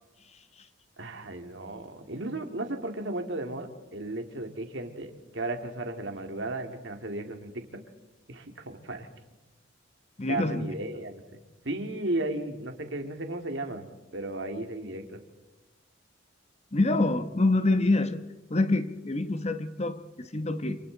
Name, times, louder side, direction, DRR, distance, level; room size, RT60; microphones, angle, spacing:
voice 1, 1.0-7.6 8.3-9.1 10.3-11.2 11.6-15.2, right 2 dB, 65° right, 5 dB, 2.3 m, -35 dB
voice 2, 10.2-10.7 16.7-18.2 18.5-20.8, left 2 dB, 35° left, 10 dB, 1.1 m, -26 dB
27.5 x 27.0 x 4.0 m, 1.1 s
head